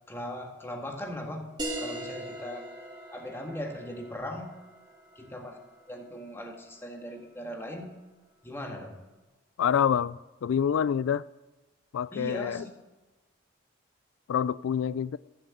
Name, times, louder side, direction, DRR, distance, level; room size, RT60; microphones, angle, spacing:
voice 1, 0.1-1.5 1.8-2.7 3.1-4.6 5.2-5.6 5.9-8.0 8.4-9.0 12.1-12.7, equal, 10° left, 1.7 m, -39 dB
sound 1, 1.6-6.7, right 1 dB, 20° right, 2.6 m, -40 dB
voice 2, 9.6-11.2 11.9-12.6 14.3-15.2, left 8 dB, 90° left, 0.3 m, -27 dB
14.5 x 7.8 x 8.3 m
head